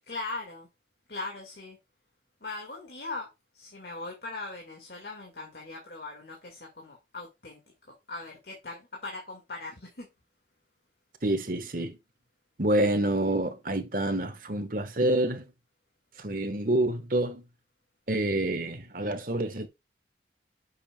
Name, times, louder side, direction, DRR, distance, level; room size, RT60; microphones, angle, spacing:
voice 1, 0.1-0.7 1.1-1.8 2.4-10.1, left 2 dB, 65° left, 2.0 m, -40 dB
voice 2, 11.2-12.0 12.6-15.4 16.2-17.4 18.1-19.7, right 1 dB, 50° right, 1.3 m, -27 dB
8.6 x 6.9 x 2.3 m
head